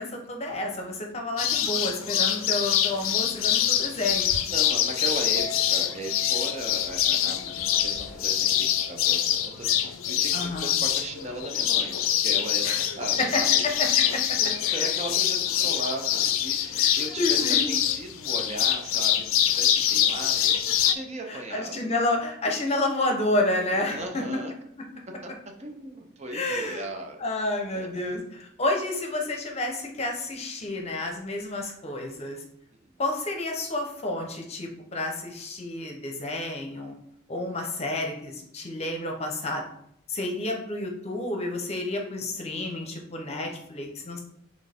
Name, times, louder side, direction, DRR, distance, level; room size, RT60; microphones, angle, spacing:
voice 1, 0.0-4.4 10.3-10.7 12.6-12.8 13.3-13.4 14.0-14.1 14.7-14.9 16.7-17.7 21.3-24.2 26.3-26.9 27.2-32.4 33.0-36.9 37.3-39.7 40.1-44.2, left 2 dB, 30° left, 2 dB, 0.7 m, -30 dB
sound 1, 1.4-20.9, left 10 dB, 90° left, 0.4 m, -25 dB
voice 2, 4.5-13.8 14.1-20.6 20.9-21.9 23.9-24.5 25.2-25.3 25.6-27.2 27.7-27.9 32.8-32.9, right 2 dB, 35° right, 3 dB, 0.5 m, -37 dB
Chink clink, 5.4-11.7, left 4 dB, 60° right, 1.1 m, -44 dB
4.4 x 3.4 x 3.5 m, 0.73 s
head